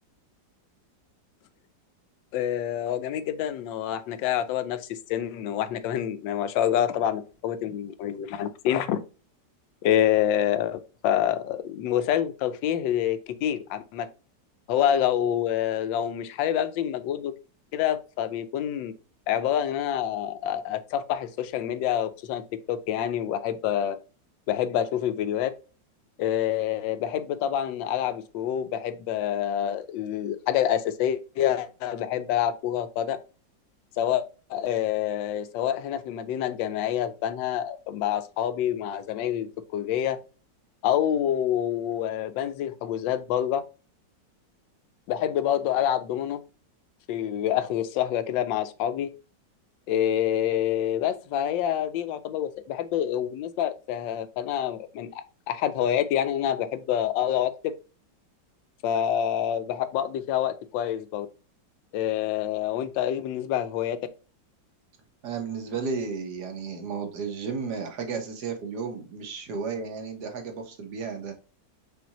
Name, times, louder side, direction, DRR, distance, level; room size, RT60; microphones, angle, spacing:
voice 1, 2.3-9.0 9.8-14.1 14.7-17.3 17.7-18.9 19.3-22.4 22.7-24.0 24.5-25.5 26.2-33.2 34.0-34.2 34.5-40.2 40.8-43.6 45.1-46.4 47.1-49.1 49.9-57.7 58.8-61.3 61.9-64.0, left 10 dB, 90° left, 1.3 m, -27 dB
voice 2, 65.2-71.3, right 5 dB, 65° right, 1.4 m, -33 dB
5.1 x 2.7 x 2.8 m
omnidirectional pair, 1.9 m